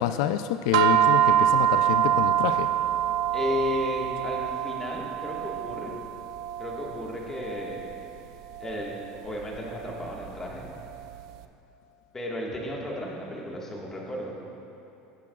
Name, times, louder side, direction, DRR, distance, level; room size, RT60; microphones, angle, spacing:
voice 1, 0.0-2.7, left 10 dB, 85° left, 9 dB, 0.3 m, -27 dB
sound 1, 0.7-11.2, right 10 dB, 85° right, 0.4 m, -26 dB
voice 2, 3.3-5.9 6.6-7.8 8.6-10.6 12.1-14.3, left 1 dB, 15° left, -2 dB, 1.5 m, -33 dB
16.5 x 8.3 x 2.3 m, 2.8 s
cardioid pair, 145°, 3 cm